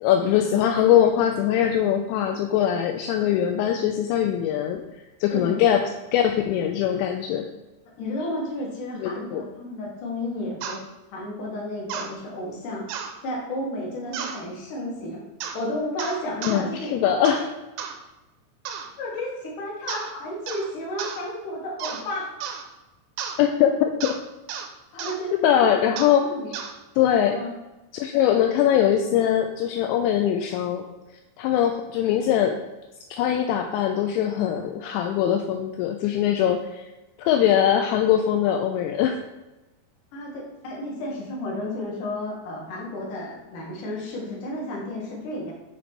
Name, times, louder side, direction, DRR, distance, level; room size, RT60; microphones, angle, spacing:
voice 1, 0.0-4.8 5.2-7.5 9.0-9.4 16.5-17.4 23.4-24.2 25.4-26.3 27.0-27.4 27.9-30.9 31.4-32.6 33.1-36.9 37.2-39.2, left 10 dB, 85° left, 4 dB, 2.7 m, -22 dB
voice 2, 8.0-10.8 11.1-12.8 13.2-15.2 15.5-17.4 19.0-22.3 24.9-25.3 25.6-25.9 26.2-26.6 27.3-27.5 40.1-45.5, left 1 dB, 60° left, -3 dB, 2.4 m, -32 dB
sound 1, 10.6-10.8 11.9-12.1 12.9-13.1 14.1-14.4 15.4-15.6 16.0-16.6 17.3-17.5 17.8-18.0 18.7-18.9 19.9-20.1 20.5-20.7 21.0-21.2 21.8-22.1 22.4-22.6 23.2-23.4 24.0-24.2 24.5-24.7 25.0-25.2 26.0-26.2 26.5-26.7, right 7 dB, 80° right, 2.7 m, -33 dB
9.3 x 3.2 x 4.4 m, 1.0 s
omnidirectional pair, 5.3 m